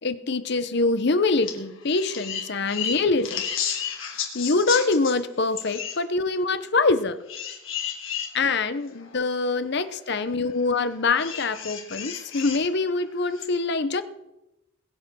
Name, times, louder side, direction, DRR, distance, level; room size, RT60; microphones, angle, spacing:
voice 1, 0.0-3.4 4.1-7.2 8.3-14.0, left 3 dB, 55° left, 12 dB, 0.8 m, -24 dB
sound 1, 1.4-1.6 1.8-5.1 5.6-6.0 7.3-8.3 9.0-9.1 11.2-12.6 13.3-13.4, left 8 dB, 75° left, 3.1 m, -32 dB
20.5 x 8.3 x 6.2 m, 0.94 s
head